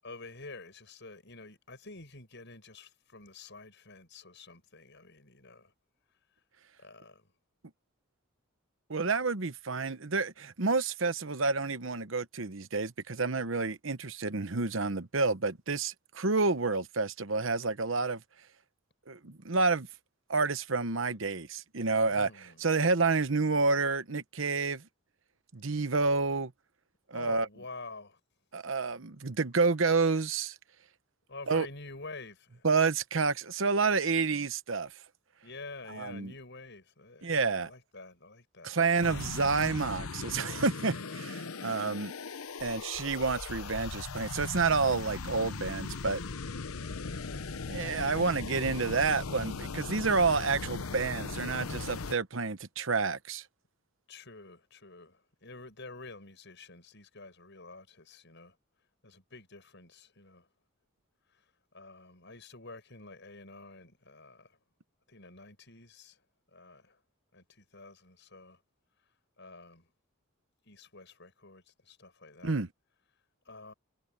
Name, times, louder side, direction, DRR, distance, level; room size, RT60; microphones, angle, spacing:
voice 1, 0.0-5.7 6.8-7.3 22.0-22.6 27.1-28.2 31.3-32.7 35.4-38.8 39.1-39.5 47.1-47.5 54.1-58.6 59.0-60.5 61.7-64.6 65.1-66.2 66.5-67.0 67.3-68.6 69.4-69.9 70.6-72.6 73.5-73.7, left 3 dB, 55° left, 7.8 m, -48 dB
voice 2, 8.9-18.2 19.1-19.9 20.3-22.3 22.6-24.8 25.5-26.5 27.1-27.5 28.5-30.5 31.5-31.7 32.6-34.9 35.9-36.3 37.2-37.7 38.6-42.1 42.6-46.2 47.7-53.4 72.4-72.7, right 4 dB, 65° right, 1.0 m, -29 dB
sound 1, 39.0-52.2, left 4 dB, 90° left, 0.9 m, -39 dB
head